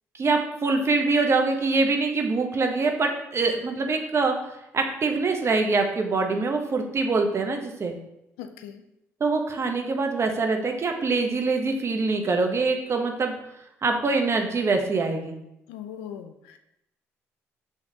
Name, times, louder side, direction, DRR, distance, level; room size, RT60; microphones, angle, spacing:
voice 1, 0.1-4.3 4.7-8.0 9.2-13.3 13.8-15.3, right 3 dB, 40° right, 3 dB, 0.8 m, -24 dB
voice 2, 8.4-8.8 15.7-16.6, left 9 dB, 85° left, 7 dB, 0.4 m, -39 dB
5.8 x 2.9 x 2.8 m, 0.84 s
hypercardioid pair, 50°, 7 cm